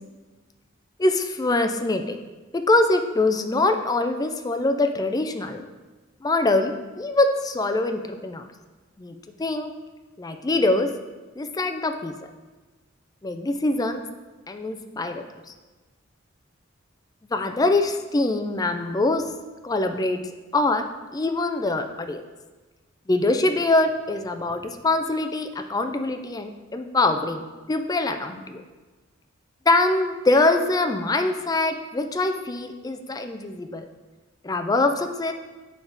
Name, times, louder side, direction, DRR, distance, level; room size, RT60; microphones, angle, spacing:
voice 1, 1.0-2.2 2.5-5.7 6.2-8.5 9.0-9.7 10.2-10.9 11.4-12.1 13.2-14.0 14.5-15.2 17.3-19.3 19.6-20.2 20.5-20.9 21.1-22.2 23.1-28.6 29.7-33.8 34.4-35.3, left 2 dB, 20° left, 6 dB, 0.4 m, -23 dB
8.1 x 3.5 x 3.9 m, 1.2 s
head